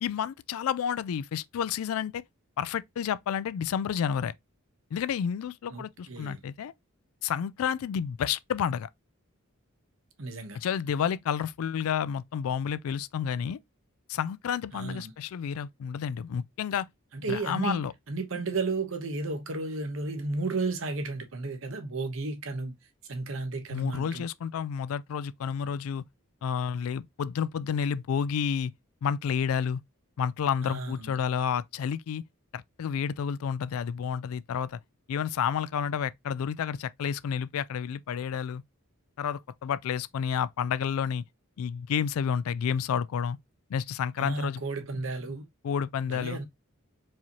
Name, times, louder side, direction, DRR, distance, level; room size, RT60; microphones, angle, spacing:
voice 1, 0.0-2.2 2.6-4.3 4.9-6.7 7.2-8.9 10.5-13.6 14.1-16.9 17.3-17.9 23.7-26.0 26.4-28.7 29.0-29.8 30.2-32.2 32.5-34.8 35.1-38.6 39.2-41.2 41.6-43.4 43.7-44.6 45.6-46.4, left 7 dB, 80° left, 0.3 m, -30 dB
voice 2, 5.7-6.4 10.2-10.6 14.7-15.1 17.1-22.8 23.1-24.3 30.6-31.1 44.2-45.5 46.0-46.5, right 3 dB, 60° right, 0.9 m, -33 dB
4.7 x 2.8 x 2.9 m
head